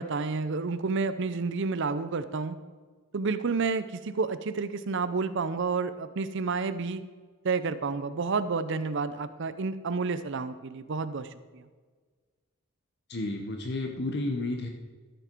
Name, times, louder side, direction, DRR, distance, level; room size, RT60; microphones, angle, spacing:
voice 1, 0.0-2.6 3.1-7.0 7.4-11.7, right 4 dB, 60° right, 12 dB, 0.6 m, -30 dB
voice 2, 13.1-14.7, left 2 dB, 55° left, 3 dB, 0.9 m, -31 dB
13.5 x 7.2 x 4.5 m, 1.5 s
head